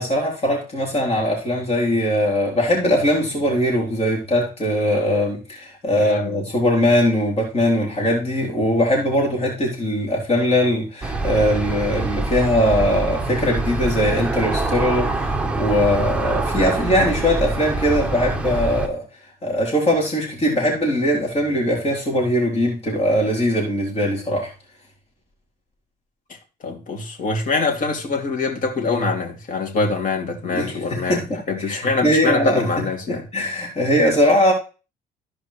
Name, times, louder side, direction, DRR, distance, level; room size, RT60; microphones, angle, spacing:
voice 1, 0.0-19.0 19.4-24.5 30.5-31.4 31.7-32.6 33.1-34.5, equal, 35° left, 3.7 m, -20 dB
voice 2, 5.9-6.4 26.3-26.4 26.6-33.2, left 3 dB, 55° left, 3.0 m, -24 dB
Aircraft, 11.0-18.9, right 3 dB, 5° right, 1.2 m, -25 dB
15.0 x 5.0 x 3.3 m
cardioid pair, 110°, 17 cm